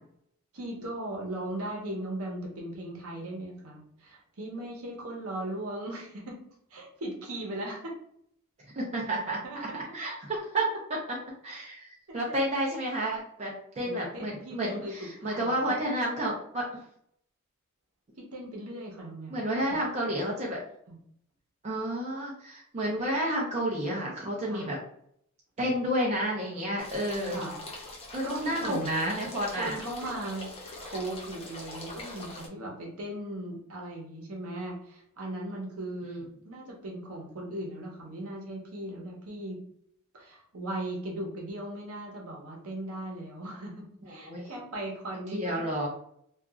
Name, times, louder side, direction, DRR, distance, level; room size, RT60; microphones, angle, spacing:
voice 1, 0.5-6.4 6.7-8.0 9.4-10.0 12.1-12.4 13.8-15.5 18.2-19.5 20.9-21.0 24.4-24.7 27.2-27.6 28.2-29.1 29.6-30.5 30.8-39.6 40.1-45.7, right 1 dB, 65° right, -1 dB, 0.8 m, -38 dB
voice 2, 8.7-9.4 9.9-11.2 11.4-16.6 19.3-20.6 21.6-24.8 25.6-27.4 28.1-29.8 36.0-36.2 44.0-44.4 45.3-45.9, right 1 dB, 30° right, -3 dB, 0.5 m, -31 dB
sound 1, 26.8-32.5, left 2 dB, 25° left, 0.5 m, -43 dB
2.8 x 2.4 x 2.4 m, 0.68 s
head